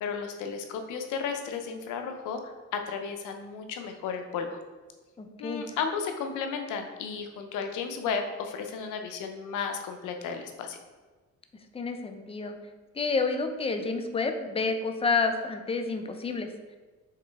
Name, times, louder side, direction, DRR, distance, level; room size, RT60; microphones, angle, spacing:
voice 1, 0.0-4.6 5.4-10.8, left 6 dB, 85° left, 5 dB, 0.6 m, -34 dB
voice 2, 5.2-5.7 11.7-12.6 12.9-16.5, left 4 dB, 20° left, 6 dB, 0.5 m, -29 dB
4.9 x 3.1 x 3.4 m, 1.3 s
cardioid pair, 90°, 30 cm